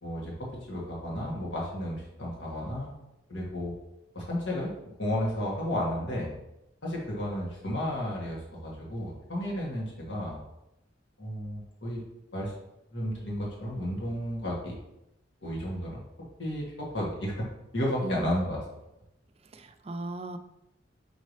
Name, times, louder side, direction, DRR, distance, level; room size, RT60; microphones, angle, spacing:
voice 1, 0.0-2.9 3.3-3.7 4.1-4.7 5.0-6.3 6.8-10.4 11.2-12.0 12.3-12.5 12.9-14.7 15.4-17.5 17.7-18.6, equal, 75° left, -4 dB, 1.9 m, -33 dB
voice 2, 18.0-18.5 19.5-20.4, right 2 dB, 35° right, 8 dB, 0.5 m, -36 dB
6.3 x 5.3 x 3.3 m, 0.88 s
head